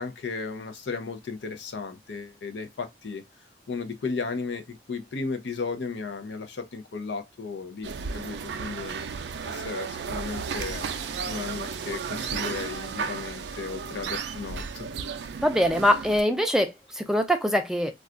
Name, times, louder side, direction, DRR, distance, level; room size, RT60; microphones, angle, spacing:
voice 1, 0.0-3.2 3.7-9.0 9.5-10.9 11.3-14.9, left 4 dB, 85° left, 0.6 m, -35 dB
sound 1, 7.8-16.2, right 5 dB, 75° right, 0.4 m, -34 dB
voice 2, 15.4-17.9, equal, 5° right, 0.4 m, -23 dB
2.3 x 2.3 x 3.7 m
head